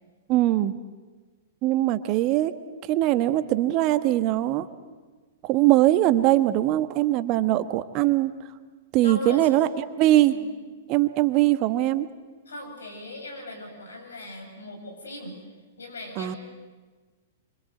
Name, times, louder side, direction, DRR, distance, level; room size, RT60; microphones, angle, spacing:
voice 1, 0.3-0.7 1.6-2.5 2.9-4.7 5.4-8.3 8.9-9.7 10.0-10.3 10.9-12.1 16.2-16.3, right 15 dB, 40° right, 11 dB, 1.4 m, -21 dB
voice 2, 9.0-9.6 10.2-10.4 12.5-15.3 15.8-16.4, left 1 dB, 80° left, 4 dB, 7.7 m, -38 dB
27.0 x 25.5 x 8.0 m, 1.3 s
hypercardioid pair, 110°, 0 cm